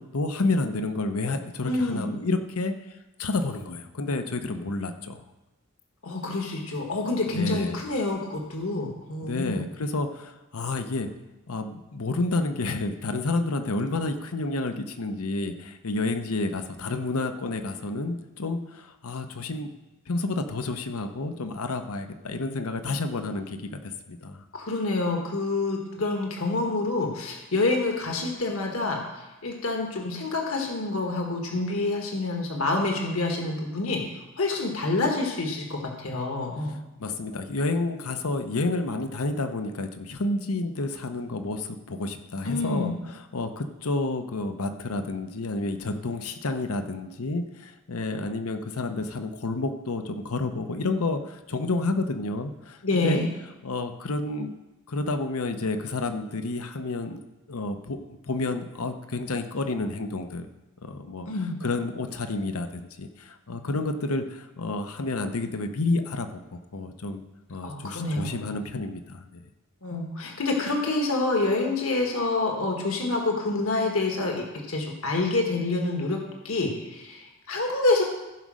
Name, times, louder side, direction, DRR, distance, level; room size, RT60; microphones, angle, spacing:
voice 1, 0.0-2.7 3.2-5.2 7.3-7.8 9.2-11.1 11.5-19.7 20.1-24.4 37.0-53.2 53.6-54.5 54.9-57.2 57.5-60.5 60.8-61.3 61.6-67.2 67.5-69.4, left 2 dB, 90° left, 8 dB, 0.9 m, -30 dB
voice 2, 1.6-2.1 6.0-9.6 24.5-34.0 34.4-36.8 42.4-42.9 52.8-53.2 61.3-61.5 67.6-68.4 69.8-76.2 76.4-78.0, left 2 dB, 70° left, 1 dB, 1.6 m, -27 dB
15.0 x 5.3 x 6.3 m, 1.0 s
head